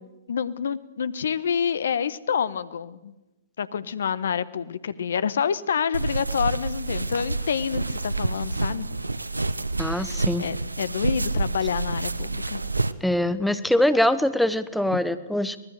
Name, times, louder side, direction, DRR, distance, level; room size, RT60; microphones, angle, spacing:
voice 1, 0.3-3.1 3.6-8.9 9.9-10.1 10.4-12.6 14.9-15.0, left 7 dB, 65° left, 17 dB, 1.1 m, -28 dB
sound 1, 5.9-12.9, right 3 dB, 90° right, 0.9 m, -28 dB
voice 2, 9.8-10.4 13.0-15.6, left 1 dB, ahead, 12 dB, 1.1 m, -23 dB
24.5 x 19.5 x 6.6 m, 1.0 s
figure-of-eight pair, 115°, 0 cm